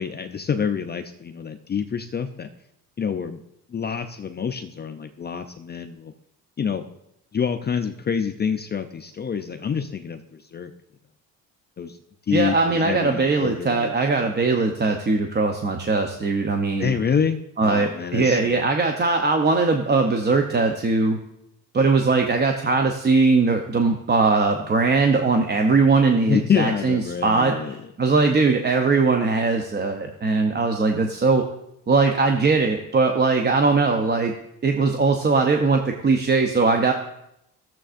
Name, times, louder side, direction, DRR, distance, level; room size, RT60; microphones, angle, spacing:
voice 1, 0.0-2.5 3.0-3.4 3.7-6.1 6.6-6.8 7.3-10.7 11.8-12.0 12.3-13.9 16.8-18.6 26.3-27.8, left 7 dB, 30° left, 7 dB, 0.5 m, -27 dB
voice 2, 12.3-16.9 17.6-21.2 21.7-27.5 28.0-31.4 31.9-34.3 34.6-36.9, right 4 dB, 30° right, 4 dB, 0.7 m, -20 dB
14.0 x 7.4 x 2.5 m, 0.81 s
cardioid pair, 105°, 36 cm